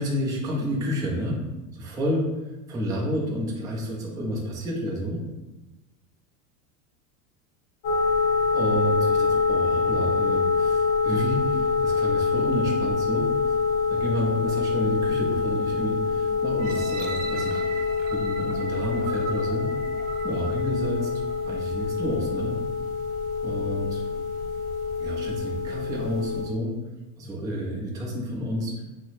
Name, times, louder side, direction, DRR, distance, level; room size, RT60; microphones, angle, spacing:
voice 1, 0.0-1.4 1.7-2.3 2.7-5.2 8.5-13.5 13.9-17.8 18.1-19.7 20.2-21.1 21.5-22.6 23.4-24.0 25.0-26.7 27.2-28.8, equal, 10° right, -3 dB, 0.3 m, -30 dB
sound 1, 7.8-26.5, left 4 dB, 55° left, 0.9 m, -26 dB
sound 2, 16.6-21.5 22.1-22.2, right 4 dB, 55° right, 0.6 m, -38 dB
2.8 x 2.0 x 4.0 m, 1.1 s
supercardioid pair, 110°, 45 cm